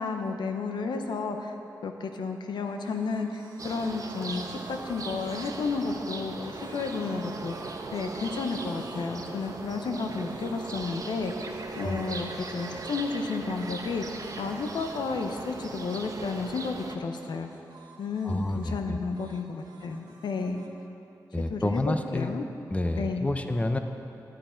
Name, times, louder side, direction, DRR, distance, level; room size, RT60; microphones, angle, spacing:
voice 1, 0.0-1.5 1.8-17.5 18.0-20.6 21.5-22.4 23.0-23.3, left 4 dB, 80° left, 5 dB, 0.7 m, -32 dB
sound 1, 2.6-6.0 6.5-9.1 9.4-16.9 17.2-18.8 19.1-20.7, right 2 dB, 75° right, 1.5 m, -52 dB
sound 2, 3.6-17.0, right 3 dB, 50° right, 0.9 m, -39 dB
voice 2, 18.2-19.0 21.3-22.3 22.7-23.8, left 1 dB, 20° left, 7 dB, 0.7 m, -29 dB
11.5 x 10.0 x 4.4 m, 2.9 s
cardioid pair, 60°, 7 cm